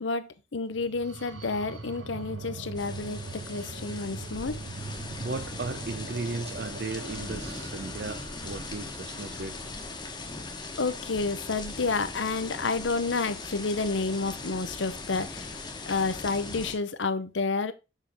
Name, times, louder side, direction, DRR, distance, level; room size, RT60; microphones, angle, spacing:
voice 1, 0.0-4.6 10.8-17.7, left 3 dB, 75° left, 0.7 m, -30 dB
sound 1, 0.7-10.5, right 3 dB, 75° right, 1.2 m, -42 dB
sound 2, 2.7-16.8, left 3 dB, 25° left, 1.2 m, -39 dB
voice 2, 5.2-9.6, right 3 dB, 55° right, 0.6 m, -36 dB
7.3 x 5.7 x 3.5 m
head